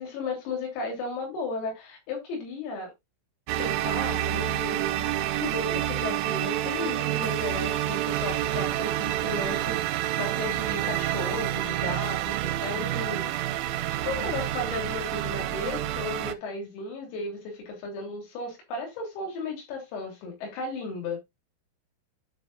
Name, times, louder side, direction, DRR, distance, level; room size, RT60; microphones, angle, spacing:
voice 1, 0.0-2.9 3.6-13.3 14.0-21.2, left 3 dB, 85° left, 6.1 m, -35 dB
sound 1, 3.5-16.3, right 13 dB, 85° right, 3.1 m, -28 dB
13.5 x 5.4 x 2.4 m
omnidirectional pair, 6.0 m